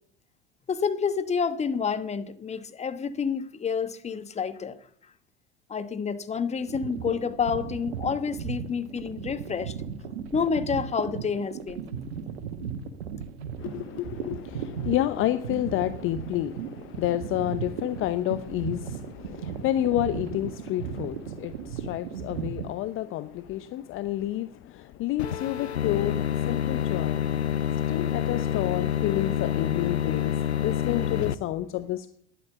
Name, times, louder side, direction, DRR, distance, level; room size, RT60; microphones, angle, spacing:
voice 1, 0.7-4.8 5.7-9.7 10.3-11.9, left 6 dB, 20° left, 1.1 m, -29 dB
sound 1, 6.6-22.7, right 7 dB, 75° right, 1.4 m, -36 dB
voice 2, 13.6-27.2 27.9-32.1, left 14 dB, 40° left, 0.7 m, -30 dB
sound 2, 25.2-31.4, left 10 dB, 85° left, 0.6 m, -27 dB
10.5 x 8.9 x 8.2 m
hypercardioid pair, 80°, 32 cm